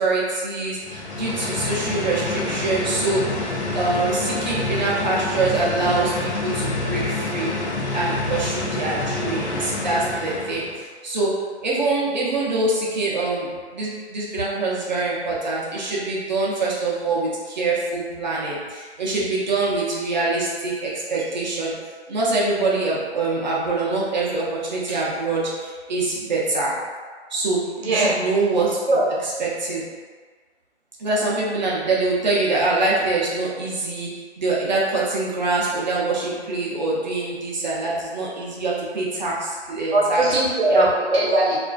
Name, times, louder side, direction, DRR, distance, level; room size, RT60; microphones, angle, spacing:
voice 1, 0.0-3.5 3.7-7.5 7.9-21.7 22.1-26.8 27.3-28.8 29.4-29.8 31.0-40.3 40.7-40.9, right 3 dB, 40° right, -6 dB, 0.5 m, -24 dB
sound 1, 0.8-10.8, left 2 dB, 75° left, 0.6 m, -27 dB
voice 2, 27.8-28.1 28.9-29.0 39.9-41.6, right 2 dB, 65° right, -5 dB, 0.9 m, -19 dB
2.4 x 2.3 x 2.2 m, 1.5 s
hypercardioid pair, 150°, 34 cm